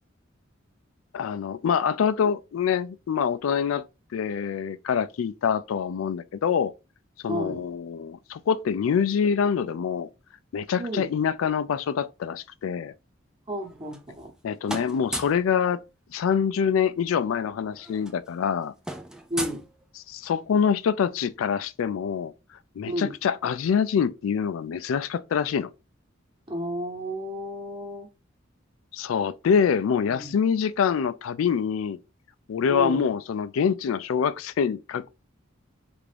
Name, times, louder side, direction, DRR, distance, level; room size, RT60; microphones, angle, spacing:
voice 1, 1.1-3.8 4.1-6.7 7.2-10.1 10.5-12.9 14.4-15.8 16.1-18.7 20.1-22.3 22.8-25.7 28.9-32.0 32.5-35.1, left 7 dB, 90° left, 0.3 m, -25 dB
voice 2, 7.3-7.6 10.8-11.1 13.5-14.3 19.3-19.6 22.9-23.2 26.5-28.1 30.1-30.4 32.7-33.1, equal, 25° right, 1.0 m, -32 dB
sound 1, 13.6-14.4 14.6-15.5 16.8-16.9 17.2-17.4 17.7-20.3, right 1 dB, 5° right, 0.4 m, -36 dB
3.4 x 2.5 x 3.3 m
head